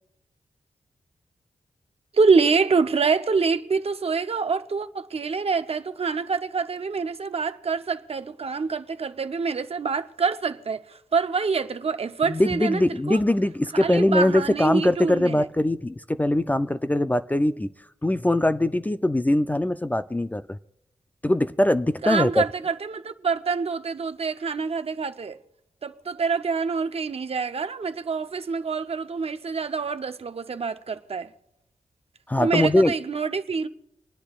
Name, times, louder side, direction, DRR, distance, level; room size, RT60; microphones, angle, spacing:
voice 1, 2.1-12.8 13.1-13.2 13.8-15.5 22.0-25.4 25.8-31.3 32.4-33.7, right 5 dB, 50° right, 0.7 m, -26 dB
voice 2, 12.2-17.7 18.0-20.6 21.2-22.4 32.3-32.9, left 1 dB, 15° left, 0.4 m, -22 dB
29.5 x 9.8 x 2.4 m
wide cardioid pair, 80°, 13 cm